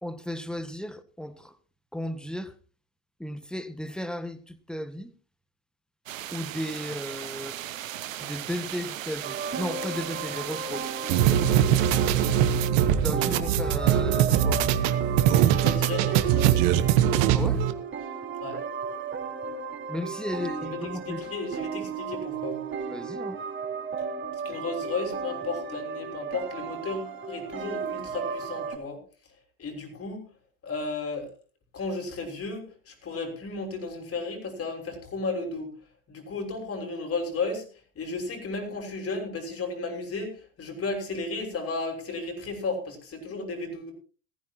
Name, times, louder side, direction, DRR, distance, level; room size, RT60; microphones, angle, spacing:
voice 1, 0.0-1.5 1.9-2.5 3.2-5.1 6.3-7.6 8.2-10.9 11.3-11.5 13.0-14.6 17.3-17.7 19.9-21.2 22.9-23.4, left 1 dB, ahead, 1.7 m, -35 dB
sound 1, 6.1-12.7, right 13 dB, 85° right, 0.9 m, -37 dB
sound 2, 9.2-28.8, right 5 dB, 30° right, 4.0 m, -35 dB
sound 3, 11.1-17.7, right 10 dB, 65° right, 1.5 m, -22 dB
voice 2, 15.5-16.6 18.4-18.6 20.4-22.6 24.4-29.0 29.6-30.2 30.6-31.3 31.7-35.7 36.1-37.7 38.0-43.9, left 3 dB, 35° left, 6.2 m, -34 dB
19.0 x 15.0 x 3.0 m
hypercardioid pair, 75°, 39 cm